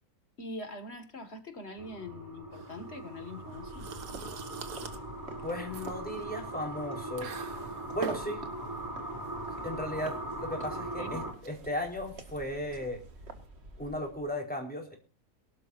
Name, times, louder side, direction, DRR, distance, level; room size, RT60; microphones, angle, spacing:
voice 1, 0.4-3.9 11.0-11.2, left 2 dB, 45° left, 8 dB, 2.3 m, -43 dB
sound 1, 1.8-11.3, right 1 dB, 15° right, 3.1 m, -40 dB
sound 2, 2.5-13.5, right 6 dB, 90° right, 1.9 m, -45 dB
sound 3, 3.4-14.3, right 2 dB, 45° right, 2.1 m, -50 dB
voice 2, 5.4-7.3 7.9-8.4 9.6-13.0 13.8-15.0, left 1 dB, 5° left, 1 dB, 4.5 m, -36 dB
23.0 x 12.0 x 2.7 m, 0.31 s
omnidirectional pair, 1.6 m